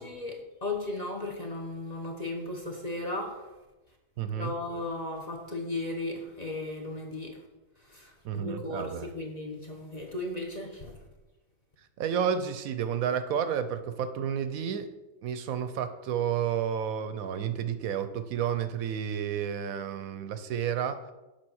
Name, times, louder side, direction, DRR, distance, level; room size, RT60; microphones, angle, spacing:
voice 1, 0.0-3.4 4.3-7.4 7.9-10.9, left 2 dB, 30° left, 0 dB, 0.9 m, -36 dB
voice 2, 4.2-4.5 8.2-9.1 12.0-14.9 15.2-21.1, right 8 dB, 75° right, 10 dB, 1.0 m, -31 dB
7.4 x 4.5 x 6.2 m, 1.1 s
omnidirectional pair, 1.6 m